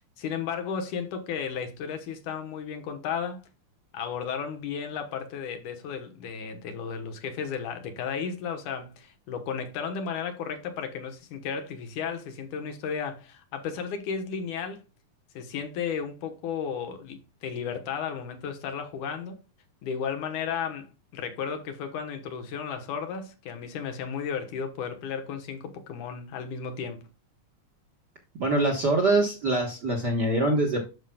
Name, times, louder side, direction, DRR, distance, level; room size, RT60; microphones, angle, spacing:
voice 1, 0.0-3.4 3.9-14.8 15.3-19.4 19.8-27.1, left 6 dB, 75° left, 2.6 m, -34 dB
voice 2, 28.4-30.8, right 2 dB, 45° right, 1.4 m, -24 dB
12.0 x 5.0 x 2.3 m
omnidirectional pair, 3.6 m